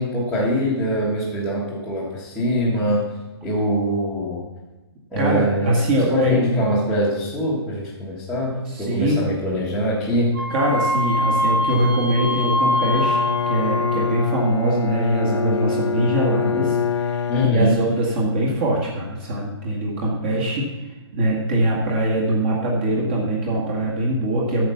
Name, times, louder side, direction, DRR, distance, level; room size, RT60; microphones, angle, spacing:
voice 1, 0.0-3.0 3.4-4.4 5.1-10.3 17.3-17.8, equal, ahead, -12 dB, 1.5 m, -23 dB
voice 2, 5.2-6.4 8.7-9.3 10.5-13.2 13.5-17.3 17.5-20.6 21.1-24.7, right 1 dB, 25° right, -4 dB, 2.0 m, -22 dB
Wind instrument woodwind instrument, 10.3-14.3, left 1 dB, 45° right, 3.0 m, -23 dB
Bowed string instrument, 12.7-18.2, left 6 dB, 90° left, 0.8 m, -25 dB
13.5 x 5.2 x 7.0 m, 1.1 s
hypercardioid pair, 175°, 14 cm